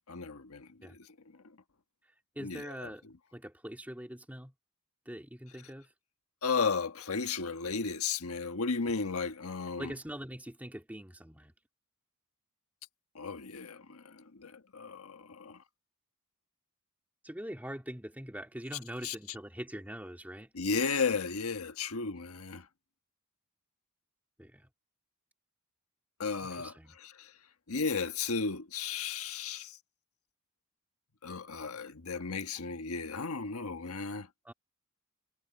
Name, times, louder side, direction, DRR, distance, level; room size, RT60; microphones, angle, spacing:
voice 1, 0.1-1.0 2.4-2.7 6.4-9.9 13.1-15.6 19.0-19.1 20.5-22.6 26.2-27.3 27.7-29.7 31.2-34.3, left 5 dB, 75° left, 1.3 m, -34 dB
voice 2, 2.4-3.0 3.3-4.5 5.1-5.9 9.8-11.5 17.2-20.5 24.4-24.7 26.5-27.0 34.4-34.5, equal, 5° right, 2.0 m, -43 dB
head